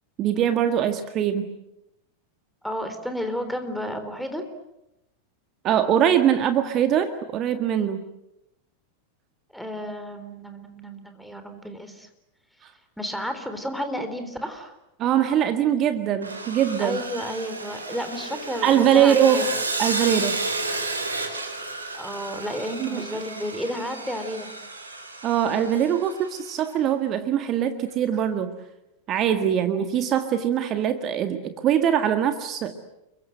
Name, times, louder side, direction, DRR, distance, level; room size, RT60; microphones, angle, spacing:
voice 1, 0.2-1.5 5.6-8.0 15.0-17.0 18.6-19.5 19.8-20.4 22.8-23.1 25.2-28.6 29.1-32.8, right 9 dB, 35° right, 8 dB, 1.8 m, -22 dB
voice 2, 2.6-4.4 9.5-12.1 13.0-14.7 16.8-19.5 21.9-24.5, equal, ahead, 7 dB, 3.9 m, -32 dB
Sawing, 16.2-26.5, right 3 dB, 75° right, 4.2 m, -32 dB
30.0 x 24.0 x 7.9 m, 0.87 s
figure-of-eight pair, 90°, 0 cm